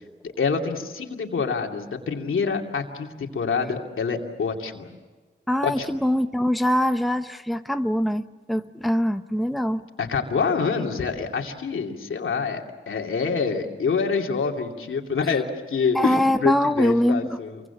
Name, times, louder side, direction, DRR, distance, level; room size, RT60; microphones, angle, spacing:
voice 1, 0.2-4.9 5.6-5.9 10.0-17.6, left 5 dB, 85° left, 2 dB, 2.7 m, -26 dB
voice 2, 5.5-9.8 15.9-17.2, equal, ahead, 9 dB, 0.8 m, -23 dB
28.0 x 24.0 x 7.2 m, 1.3 s
wide cardioid pair, 85°, 20 cm